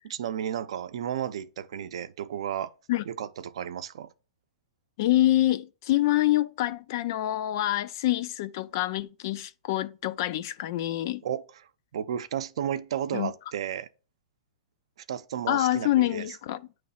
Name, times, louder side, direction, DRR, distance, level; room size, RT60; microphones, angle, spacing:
voice 1, 0.1-2.7 3.1-4.1 11.2-11.4 11.9-13.9 15.1-16.3, right 9 dB, 60° right, 0.6 m, -33 dB
voice 2, 5.0-11.2 13.1-13.3 15.5-16.6, left 14 dB, 35° left, 0.3 m, -26 dB
9.3 x 3.2 x 5.6 m
supercardioid pair, 175°, 3 cm